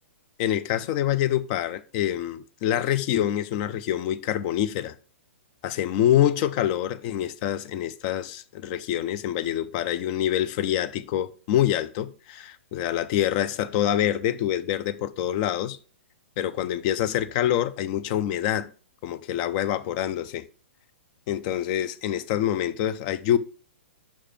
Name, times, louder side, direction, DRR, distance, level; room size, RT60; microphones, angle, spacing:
voice 1, 0.4-5.0 5.6-15.8 16.4-18.7 19.0-20.5 21.3-23.4, left 11 dB, 40° left, 0.5 m, -26 dB
5.7 x 4.9 x 5.7 m
figure-of-eight pair, 110°, 7 cm